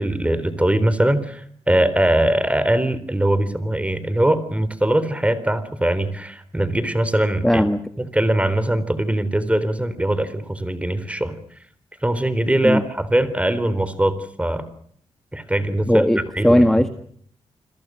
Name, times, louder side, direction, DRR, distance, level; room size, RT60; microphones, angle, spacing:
voice 1, 0.0-7.6 8.0-11.4 12.0-14.7 15.3-16.1 16.4-16.6, right 1 dB, 10° right, 14 dB, 3.9 m, -21 dB
voice 2, 7.4-7.8 12.6-12.8 15.9-16.9, equal, 5° left, 10 dB, 1.6 m, -17 dB
30.0 x 22.0 x 6.4 m, 0.62 s
cardioid pair, 80°, 11 cm